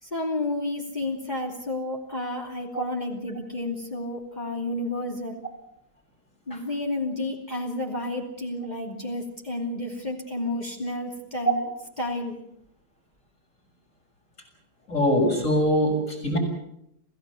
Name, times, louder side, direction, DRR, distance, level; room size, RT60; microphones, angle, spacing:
voice 1, 0.0-5.4 6.5-11.6 12.0-12.4, left 2 dB, 25° left, 0 dB, 3.0 m, -31 dB
voice 2, 14.9-16.4, equal, 45° left, 2 dB, 6.9 m, -22 dB
27.5 x 16.5 x 7.1 m, 0.77 s
omnidirectional pair, 1.8 m